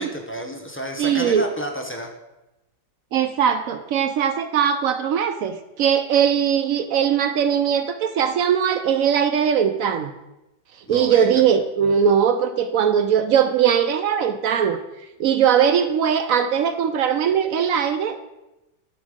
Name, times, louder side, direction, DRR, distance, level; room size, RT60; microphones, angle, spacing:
voice 1, 0.0-2.1 10.9-11.4, equal, 15° left, 2 dB, 0.5 m, -31 dB
voice 2, 1.0-1.4 3.1-10.1 10.9-14.8 15.2-18.3, right 8 dB, 70° right, 9 dB, 0.8 m, -20 dB
11.5 x 4.2 x 5.1 m, 0.96 s
omnidirectional pair, 1.8 m